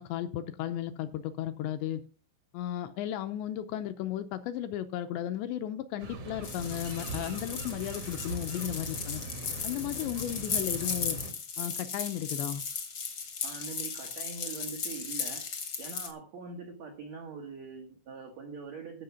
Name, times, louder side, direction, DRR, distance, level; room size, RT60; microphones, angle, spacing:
voice 1, 0.0-2.0 2.5-9.2 9.6-11.2 11.6-12.6, left 11 dB, 80° left, 9 dB, 2.7 m, -35 dB
sound 1, 6.0-11.3, right 2 dB, 65° right, 1.5 m, -41 dB
sound 2, 6.4-16.1, left 5 dB, 60° left, 1.2 m, -36 dB
voice 2, 13.4-15.4 15.8-19.0, right 5 dB, 85° right, 4 dB, 1.5 m, -43 dB
14.5 x 5.9 x 5.7 m, 0.37 s
omnidirectional pair, 5.6 m